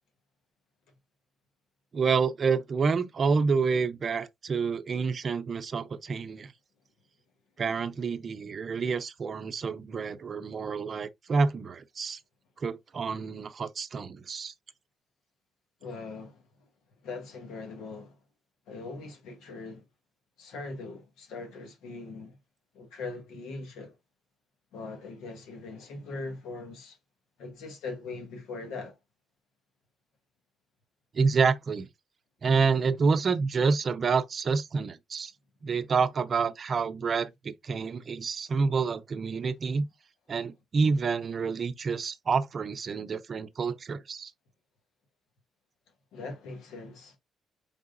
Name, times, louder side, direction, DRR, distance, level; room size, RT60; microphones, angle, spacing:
voice 1, 1.9-6.5 7.6-12.2 12.6-14.5 31.1-31.9 32.4-35.3 35.6-39.9 40.3-44.3, right 5 dB, 45° right, 0.5 m, -28 dB
voice 2, 15.8-16.4 17.0-18.1 18.7-19.8 20.4-22.3 22.7-23.9 24.7-27.0 27.4-29.0 46.1-47.2, left 3 dB, 90° left, 1.4 m, -41 dB
4.6 x 3.6 x 2.5 m
cardioid pair, 90°, 0 cm